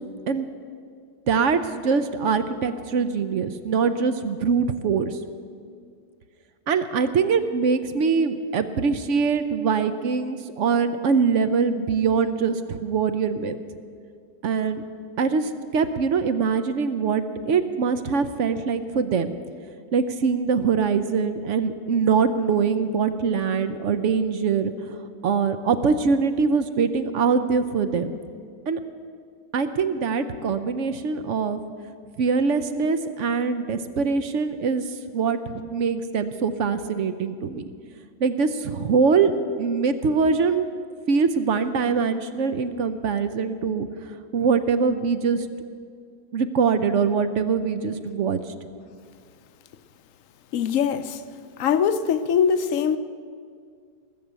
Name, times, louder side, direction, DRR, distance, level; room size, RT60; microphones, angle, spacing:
voice 1, 1.3-5.2 6.7-13.6 14.4-14.8 15.2-19.3 19.9-25.0 25.2-28.1 28.7-28.8 29.5-31.6 32.2-34.8 35.1-37.6 38.2-39.3 39.6-40.7 41.1-43.9 44.3-45.5 46.3-48.4, right 5 dB, 60° right, 11 dB, 0.9 m, -23 dB
voice 2, 50.5-51.2 51.6-53.0, left 7 dB, 60° left, 11 dB, 0.9 m, -22 dB
20.0 x 7.0 x 8.1 m, 2.2 s
omnidirectional pair, 1.7 m